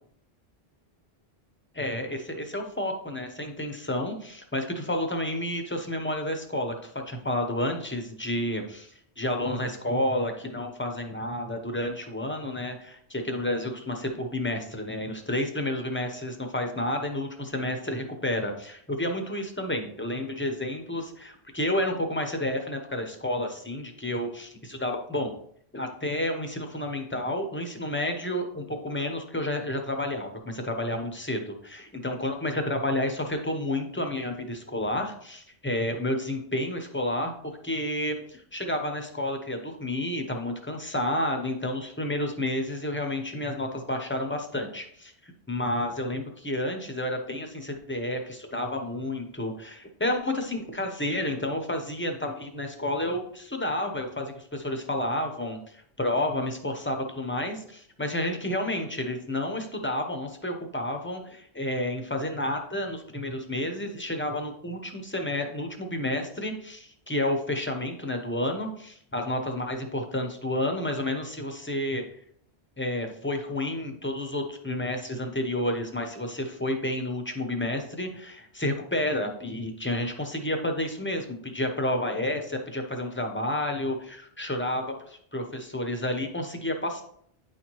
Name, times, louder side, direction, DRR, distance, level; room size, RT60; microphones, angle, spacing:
voice 1, 1.7-25.4 25.7-37.3 37.6-72.0 72.8-87.0, left 1 dB, 10° left, 4 dB, 0.8 m, -30 dB
9.4 x 4.2 x 3.1 m, 0.65 s
omnidirectional pair, 1.1 m